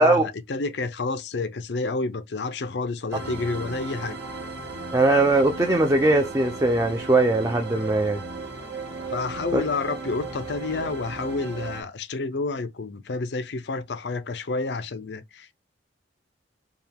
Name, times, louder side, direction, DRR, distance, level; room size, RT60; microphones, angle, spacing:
voice 1, 0.0-4.2 9.1-15.6, left 3 dB, 65° left, 0.5 m, -29 dB
sound 1, 3.1-11.8, right 3 dB, 65° right, 1.6 m, -36 dB
voice 2, 4.9-8.2 9.5-9.6, right 2 dB, 15° right, 0.5 m, -20 dB
4.7 x 2.3 x 3.5 m
head